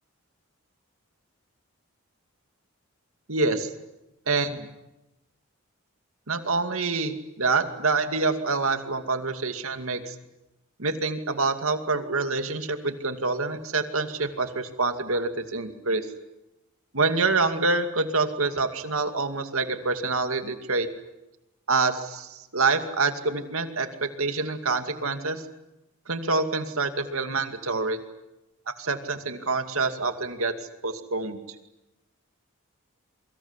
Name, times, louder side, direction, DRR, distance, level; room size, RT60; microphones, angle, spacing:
voice 1, 3.3-3.7 4.3-4.7 6.3-10.1 10.8-16.0 16.9-20.9 21.7-25.4 26.1-28.0 28.8-30.5 30.8-31.4, right 3 dB, 75° right, 7 dB, 2.4 m, -26 dB
27.5 x 24.0 x 8.2 m, 0.97 s
head